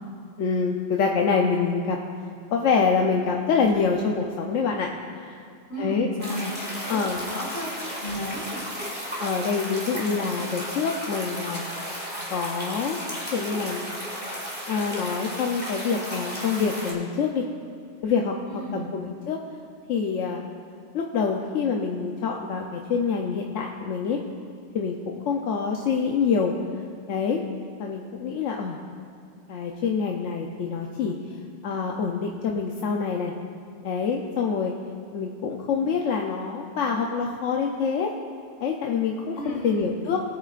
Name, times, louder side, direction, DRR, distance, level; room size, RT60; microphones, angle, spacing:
voice 1, 0.4-2.0 2.5-4.9 5.2-5.4 5.8-6.1 6.9-7.3 9.2-11.7 12.3-13.0 13.3-13.9 14.7-17.4 18.0-19.4 19.9-20.4 20.9-24.2 24.7-25.0 25.3-26.5 27.1-27.4 27.8-28.8 29.5-31.1 31.6-33.3 33.8-34.7 35.1-38.1 38.6-40.2, left 5 dB, 90° left, 1 dB, 1.1 m, -26 dB
voice 2, 5.7-7.7 8.0-8.6 18.5-18.9 39.3-39.9, equal, 65° left, -4 dB, 2.7 m, -33 dB
sound 1, 6.2-16.9, equal, 10° right, 2.0 m, -34 dB
20.5 x 8.5 x 2.5 m, 2.4 s
omnidirectional pair, 1.2 m